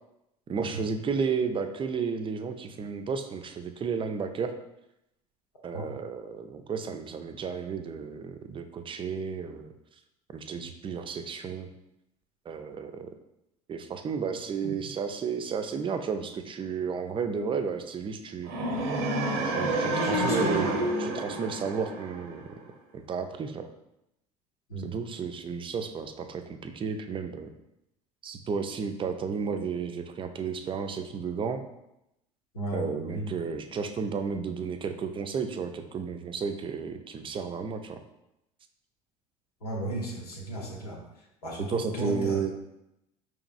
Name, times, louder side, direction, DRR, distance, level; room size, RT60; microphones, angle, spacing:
voice 1, 0.5-4.5 5.6-9.7 10.3-11.7 12.5-13.1 13.7-18.5 19.4-22.5 22.9-23.7 24.8-27.5 28.2-31.6 32.7-38.0 41.7-42.5, right 6 dB, 25° right, 7 dB, 0.4 m, -33 dB
sound 1, 18.4-22.6, right 1 dB, 70° right, 0.6 m, -29 dB
voice 2, 19.9-20.7 24.7-24.9 32.5-33.3 39.6-41.0 41.4-42.5, right 1 dB, 90° left, -2 dB, 1.0 m, -33 dB
4.8 x 3.0 x 2.5 m, 0.86 s
hypercardioid pair, 70°, 19 cm